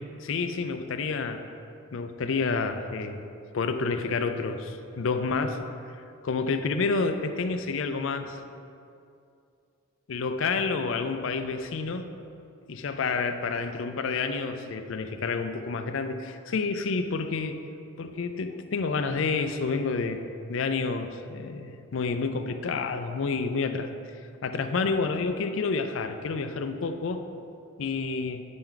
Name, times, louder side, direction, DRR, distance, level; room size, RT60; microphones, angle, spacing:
voice 1, 0.0-1.4 1.9-3.2 3.5-5.6 6.2-8.4 10.1-12.1 12.7-17.6 18.0-20.2 20.5-23.9 24.4-27.2 27.8-28.4, left 4 dB, 60° left, 8 dB, 0.4 m, -29 dB
8.4 x 4.5 x 3.9 m, 2.5 s
head